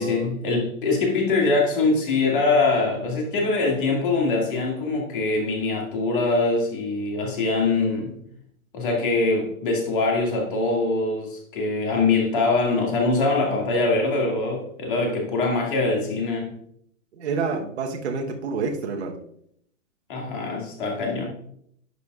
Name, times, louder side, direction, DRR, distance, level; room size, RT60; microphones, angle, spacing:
voice 1, 0.0-8.2 8.7-16.5 20.1-21.3, left 3 dB, 40° left, -1 dB, 2.2 m, -23 dB
voice 2, 17.1-19.2, right 4 dB, 50° right, 2 dB, 1.2 m, -28 dB
11.5 x 6.7 x 2.4 m, 0.68 s
hypercardioid pair, 180°, 42 cm